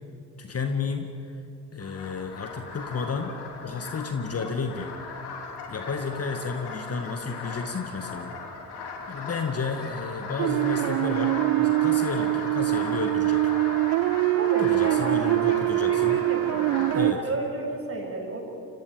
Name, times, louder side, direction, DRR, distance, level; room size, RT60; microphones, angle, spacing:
voice 1, 0.4-1.4 1.7-3.3 3.6-4.9 5.7-8.4 9.1-13.4 14.6-16.2 16.9-17.2, left 5 dB, 30° left, 6 dB, 2.0 m, -32 dB
sound 1, 1.8-17.0, left 4 dB, 55° left, 4.3 m, -37 dB
sound 2, 10.4-17.1, right 19 dB, 45° right, 0.5 m, -24 dB
voice 2, 14.4-18.4, right 2 dB, 30° right, 0 dB, 7.6 m, -33 dB
29.5 x 26.5 x 5.2 m, 2.9 s
figure-of-eight pair, 50°, 48 cm